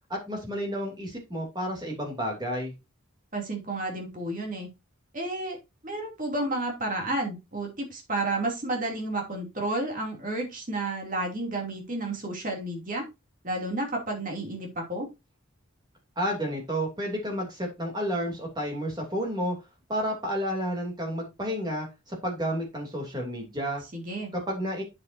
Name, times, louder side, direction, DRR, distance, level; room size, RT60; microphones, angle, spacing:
voice 1, 0.1-2.7 16.2-19.5 19.9-23.8 24.5-24.8, equal, 20° right, 0 dB, 2.7 m, -31 dB
voice 2, 3.3-4.7 5.1-5.6 5.8-13.1 13.4-15.1 23.9-24.3, right 2 dB, 35° right, 1 dB, 2.7 m, -31 dB
8.3 x 7.8 x 2.7 m, 0.24 s
head